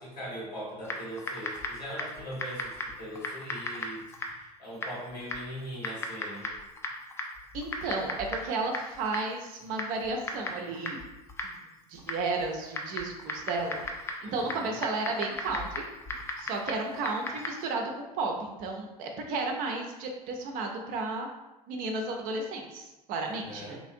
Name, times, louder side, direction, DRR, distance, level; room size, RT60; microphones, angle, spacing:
voice 1, 0.0-6.5 14.2-14.8 23.2-23.8, equal, 80° left, -6 dB, 1.4 m, -41 dB
Typing, 0.8-17.7, left 2 dB, 10° left, 0.3 m, -38 dB
voice 2, 7.5-11.0 11.4-11.6 11.9-13.9 14.2-15.8 16.4-21.3 21.7-23.8, right 3 dB, 40° right, 2 dB, 0.5 m, -33 dB
3.0 x 2.4 x 2.6 m, 1.0 s
figure-of-eight pair, 75°, 21 cm